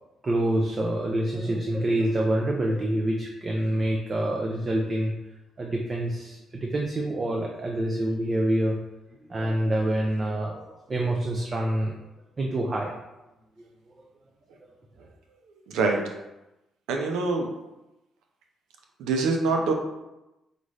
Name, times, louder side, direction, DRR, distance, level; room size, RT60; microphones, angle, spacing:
voice 1, 0.2-5.1 5.6-8.8 9.3-11.9 12.4-13.0, right 1 dB, 35° right, 0 dB, 0.5 m, -26 dB
voice 2, 15.7-16.0 16.9-17.5 19.0-19.7, right 3 dB, 90° right, 3 dB, 0.6 m, -24 dB
5.1 x 2.5 x 3.2 m, 0.96 s
cardioid pair, 90°, 0 cm